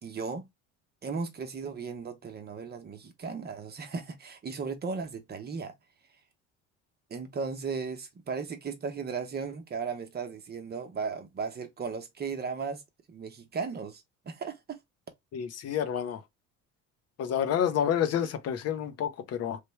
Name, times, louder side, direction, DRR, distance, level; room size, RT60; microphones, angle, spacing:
voice 1, 0.0-0.5 1.0-5.7 7.1-12.8 13.1-14.8, right 5 dB, 35° right, 0.7 m, -36 dB
voice 2, 15.3-16.2 17.2-19.6, left 9 dB, 55° left, 0.7 m, -29 dB
3.2 x 2.2 x 3.1 m
cardioid pair, 95°, 30 cm